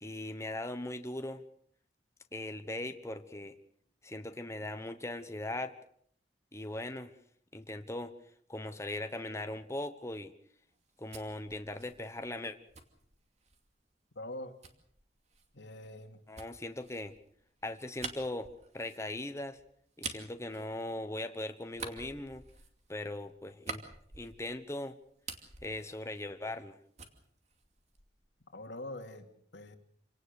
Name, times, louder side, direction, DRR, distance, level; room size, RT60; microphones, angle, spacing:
voice 1, 0.0-1.4 2.3-3.5 4.0-5.7 6.5-7.1 7.5-8.1 8.5-10.3 11.0-12.6 16.3-17.1 17.6-18.5 18.7-19.6 20.0-22.4 22.9-23.8 24.1-24.9 25.6-26.7, left 1 dB, 15° left, 7 dB, 1.1 m, -39 dB
sound 1, 10.7-13.7 14.6-21.3 21.7-24.7 25.0-26.7 27.0-28.3, right 4 dB, 40° right, 2.6 m, -48 dB
voice 2, 14.2-14.6 15.5-16.2 28.5-29.3 29.5-29.8, left 1 dB, 90° left, 5 dB, 2.7 m, -43 dB
27.5 x 18.0 x 6.7 m, 0.63 s
head